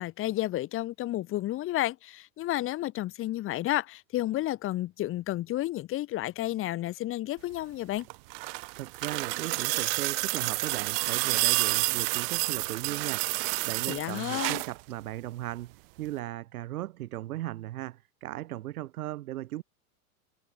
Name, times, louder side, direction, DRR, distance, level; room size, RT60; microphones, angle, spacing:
voice 1, 0.0-8.1 13.9-14.6, left 15 dB, 30° left, 1.4 m, -31 dB
sound 1, 8.0-14.8 16.1-16.2, right 28 dB, 40° right, 0.5 m, -29 dB
voice 2, 8.8-19.6, right 15 dB, 70° right, 5.2 m, -37 dB
supercardioid pair, 135°, 45 cm